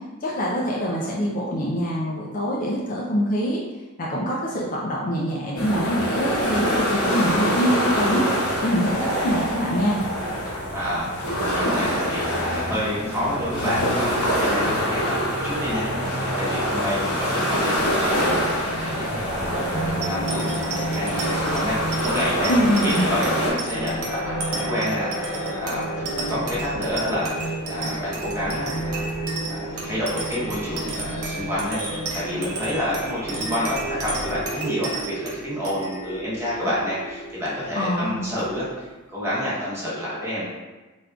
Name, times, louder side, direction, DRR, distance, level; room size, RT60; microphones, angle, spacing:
voice 1, 0.2-3.6 4.0-10.0 22.5-23.1 37.7-38.2, equal, 40° left, -3 dB, 0.4 m, -24 dB
sound 1, 5.6-23.5, equal, 90° left, 0.8 m, -25 dB
voice 2, 10.7-25.9 26.2-29.1 29.5-40.5, equal, 10° right, -9 dB, 1.0 m, -29 dB
sound 2, 17.7-34.5, equal, 55° left, 1.0 m, -32 dB
sound 3, 20.0-38.9, right 3 dB, 65° right, 0.7 m, -33 dB
3.5 x 2.5 x 2.3 m, 1.2 s
head